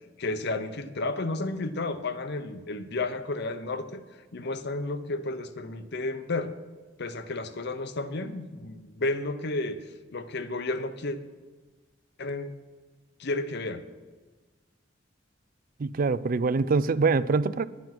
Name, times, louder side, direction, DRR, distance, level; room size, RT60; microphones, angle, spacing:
voice 1, 0.2-4.0 4.3-6.5 7.0-9.8 10.1-11.2 12.2-12.5 13.2-13.8, left 2 dB, 60° left, 11 dB, 0.8 m, -32 dB
voice 2, 15.8-17.7, right 4 dB, 50° right, 17 dB, 0.4 m, -24 dB
10.5 x 9.8 x 6.0 m, 1.3 s
head